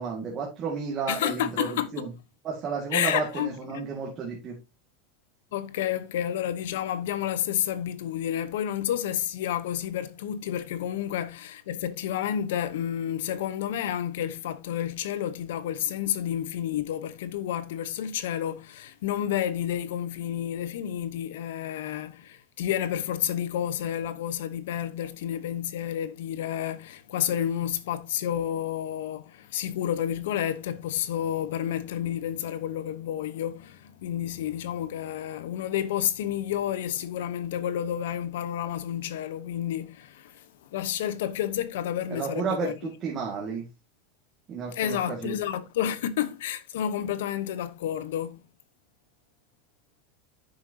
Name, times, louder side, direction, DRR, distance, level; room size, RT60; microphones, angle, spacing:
voice 1, 0.0-1.7 1.9-2.1 2.4-4.6 42.1-43.7 44.5-45.4, right 5 dB, 25° right, 2.1 m, -32 dB
voice 2, 1.1-2.1 2.9-3.8 5.5-42.9 44.7-48.4, left 10 dB, 85° left, 1.0 m, -30 dB
10.0 x 6.6 x 2.8 m
supercardioid pair, 170°, 0 cm